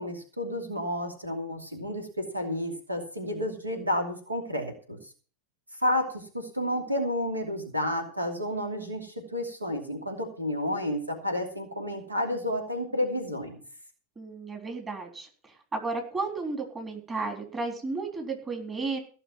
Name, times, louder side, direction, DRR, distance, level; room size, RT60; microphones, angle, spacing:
voice 1, 0.0-5.0 5.8-13.6, left 1 dB, 85° right, 3 dB, 2.8 m, -31 dB
voice 2, 14.2-15.3 15.7-19.0, right 3 dB, 20° right, 3 dB, 3.7 m, -33 dB
16.5 x 6.6 x 7.0 m, 0.40 s
figure-of-eight pair, 90°, 0 cm